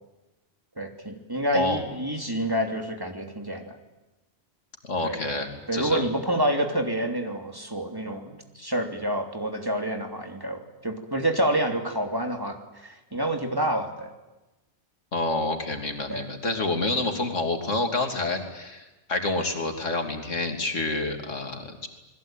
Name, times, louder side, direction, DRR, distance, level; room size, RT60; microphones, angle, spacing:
voice 1, 0.8-3.8 5.0-5.2 5.7-14.1 16.1-16.3, right 1 dB, 20° right, 4 dB, 3.1 m, -28 dB
voice 2, 4.8-6.1 15.1-21.9, left 2 dB, 85° left, 4 dB, 3.5 m, -28 dB
29.0 x 21.0 x 9.2 m, 1.1 s
omnidirectional pair, 1.2 m